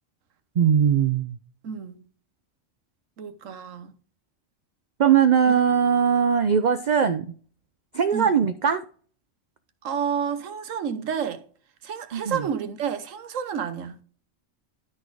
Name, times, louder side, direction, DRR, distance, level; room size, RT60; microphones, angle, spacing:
voice 1, 0.6-1.4 5.0-7.3 7.9-8.8 12.1-12.5, right 7 dB, 55° right, 0.5 m, -20 dB
voice 2, 1.6-2.0 3.2-3.9 8.1-8.3 9.8-11.4 11.8-14.0, right 7 dB, 90° right, 1.3 m, -30 dB
12.5 x 4.2 x 4.8 m
omnidirectional pair, 1.3 m